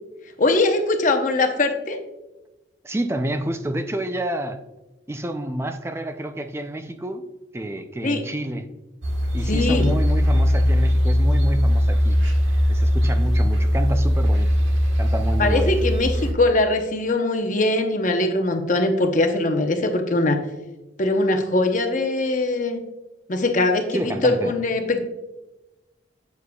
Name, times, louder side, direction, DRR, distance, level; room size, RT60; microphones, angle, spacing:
voice 1, 0.4-2.0 8.0-8.2 9.5-9.9 15.4-20.4 21.0-22.8 23.3-25.1, left 2 dB, 40° left, 5 dB, 0.8 m, -21 dB
voice 2, 2.8-4.6 5.1-7.3 7.5-8.7 9.3-12.2 12.7-14.5 15.0-15.7 23.9-24.5, right 1 dB, 15° right, 8 dB, 0.4 m, -28 dB
sound 1, 9.0-16.3, equal, 85° right, 1.3 m, -20 dB
8.2 x 7.2 x 2.3 m, 1.0 s
head